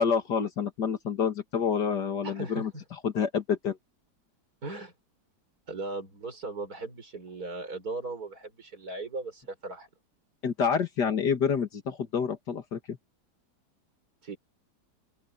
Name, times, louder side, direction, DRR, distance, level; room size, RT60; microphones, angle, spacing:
voice 1, 0.0-2.7 3.0-3.8 10.4-13.0, left 6 dB, 80° left, 2.5 m, -28 dB
voice 2, 2.2-2.8 4.6-4.9 5.7-9.9 14.2-14.4, right 3 dB, 60° right, 6.0 m, -38 dB
open air
omnidirectional pair, 1.8 m